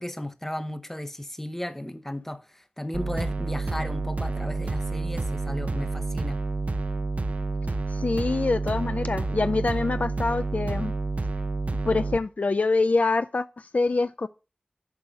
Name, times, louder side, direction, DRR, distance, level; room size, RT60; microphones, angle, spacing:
voice 1, 0.0-6.4, left 1 dB, 10° left, 0.9 m, -35 dB
sound 1, 2.9-12.2, right 3 dB, 60° right, 0.7 m, -29 dB
voice 2, 7.9-10.9 11.9-14.3, left 3 dB, 60° left, 0.3 m, -25 dB
8.3 x 4.8 x 5.1 m
wide cardioid pair, 55°, 3 cm